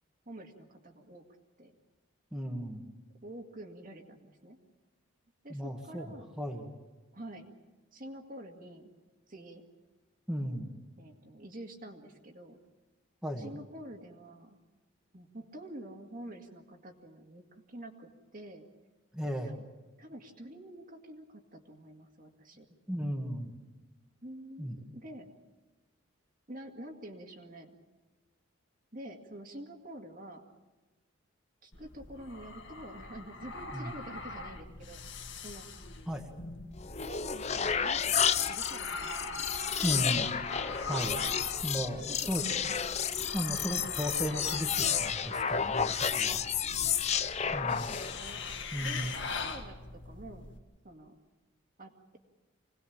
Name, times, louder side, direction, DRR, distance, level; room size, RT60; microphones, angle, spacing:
voice 1, 0.3-1.3 1.6-1.7 3.2-4.6 5.4-6.3 7.1-7.5 7.9-8.9 9.3-9.6 11.0-12.6 13.4-14.6 15.1-18.7 19.4-19.6 20.0-22.7 24.2-25.3 26.5-27.8 28.9-30.4 31.6-35.0 35.4-35.7 37.0-39.3 39.7-40.0 41.9-42.8 47.6-48.4 48.8-50.5 50.8-51.1 51.8-52.2, right 1 dB, 40° right, 3 dB, 2.1 m, -47 dB
voice 2, 2.3-2.8 5.5-6.7 10.3-10.7 13.2-13.5 19.1-19.5 22.9-23.5 24.6-24.7 33.7-33.9 36.1-36.3 39.8-40.3 40.9-41.2 41.6-42.4 42.8-43.0 43.3-46.4 46.8-46.9 47.5-47.9 48.7-49.1, equal, 5° right, 0 dB, 1.8 m, -35 dB
sound 1, 31.7-50.6, left 3 dB, 60° left, 1.9 m, -43 dB
sound 2, 36.8-48.2, left 7 dB, 30° left, 0.6 m, -31 dB
26.0 x 19.0 x 7.3 m, 1.2 s
head